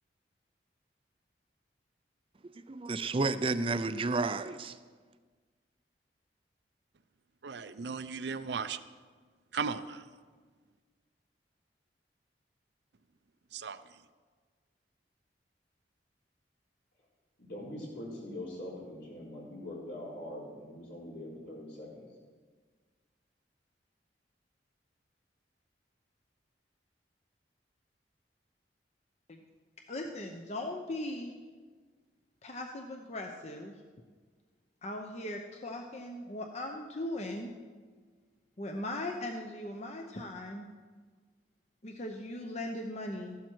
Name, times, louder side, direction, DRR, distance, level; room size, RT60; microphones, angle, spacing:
voice 1, 2.7-4.8, right 3 dB, 30° right, 0.4 m, -31 dB
voice 2, 7.4-8.8 9.5-10.1 13.5-13.8, right 5 dB, 70° right, 0.6 m, -36 dB
voice 3, 17.4-22.0, left 1 dB, 75° left, 4.4 m, -43 dB
voice 4, 29.9-31.3 32.4-33.7 34.8-37.5 38.6-40.7 41.8-43.4, left 1 dB, 40° left, 0.8 m, -39 dB
14.5 x 12.0 x 4.6 m
head